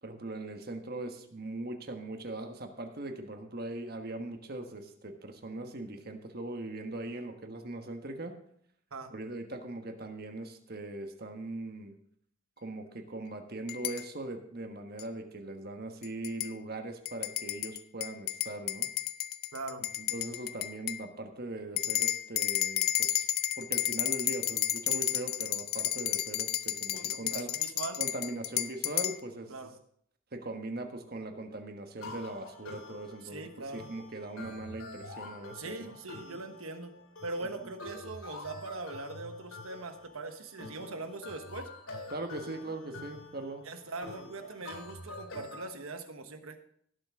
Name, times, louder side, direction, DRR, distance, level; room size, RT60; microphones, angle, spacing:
voice 1, 0.0-8.3 9.1-12.0 12.6-18.9 20.0-23.2 23.6-27.5 28.0-29.5 30.3-35.9 42.1-43.7, right 2 dB, 45° right, 5 dB, 1.4 m, -40 dB
sound 1, 13.7-14.0 15.0-15.1 16.0-16.5 17.1-21.0 21.8-29.2, left 13 dB, 45° left, 0.5 m, -32 dB
voice 2, 19.5-19.9 26.9-28.0 29.5-29.8 33.2-33.9 35.5-41.7 43.6-46.6, right 3 dB, 90° right, 8 dB, 1.3 m, -41 dB
sound 2, 32.0-45.7, left 2 dB, 85° left, 2.5 m, -47 dB
17.5 x 7.7 x 3.7 m, 0.67 s
head